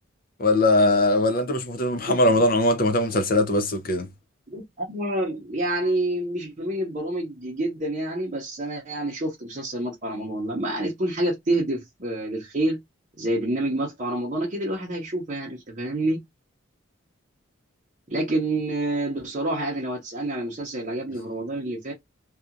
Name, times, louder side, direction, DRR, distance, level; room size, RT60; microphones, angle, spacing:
voice 1, 0.4-4.1, left 1 dB, 45° left, 0.5 m, -21 dB
voice 2, 4.5-12.8 13.2-16.2 18.1-21.9, right 1 dB, 35° right, 0.7 m, -28 dB
2.8 x 2.4 x 2.4 m
head